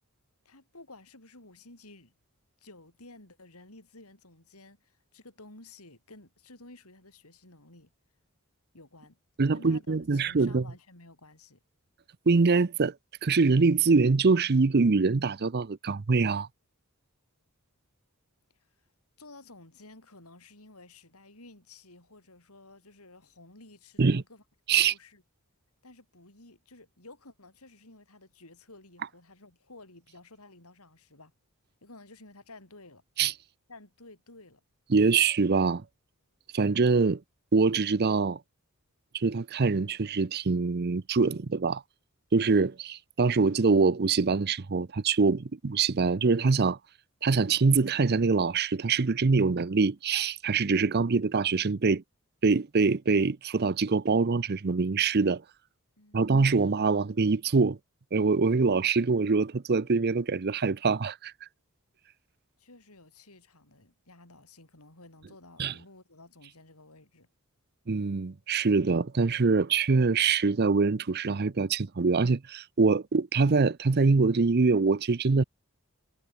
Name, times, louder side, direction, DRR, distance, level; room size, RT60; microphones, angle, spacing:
voice 1, 0.4-2.1 2.6-7.9 8.7-9.2 9.5-11.6 18.5-18.9 19.2-25.2 25.8-31.3 31.8-33.0 33.7-34.6 56.0-56.3 62.6-67.3, left 2 dB, 80° left, 6.4 m, -53 dB
voice 2, 9.4-10.6 12.3-12.9 13.2-16.5 24.0-24.2 24.7-24.9 33.2-33.3 34.9-35.8 36.5-37.2 37.5-38.4 39.1-41.8 42.3-46.8 47.2-52.0 52.4-55.4 56.1-57.8 58.1-61.3 65.6-65.7 67.9-75.4, right 4 dB, 45° right, 0.6 m, -24 dB
head